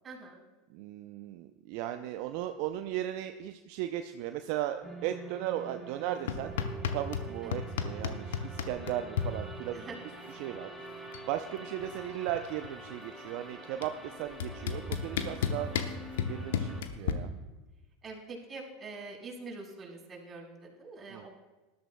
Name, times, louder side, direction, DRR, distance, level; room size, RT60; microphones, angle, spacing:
voice 1, 0.0-0.4 7.4-7.5 9.7-10.0 17.0-17.5 18.0-21.3, right 3 dB, 25° right, -2 dB, 4.1 m, -45 dB
voice 2, 0.7-6.5 6.9-9.9 10.3-10.7 11.3-15.7 16.3-17.3 21.1-21.3, right 12 dB, 60° right, 8 dB, 0.5 m, -36 dB
sound 1, 4.8-16.8, right 2 dB, ahead, 2.4 m, -46 dB
sound 2, 6.3-7.3 7.5-9.3 10.5-10.6 10.9-11.3 11.6-12.9 13.8-13.9 14.4-17.1, left 8 dB, 70° left, 0.8 m, -32 dB
19.0 x 12.0 x 2.2 m, 1.1 s
hypercardioid pair, 80°, 0 cm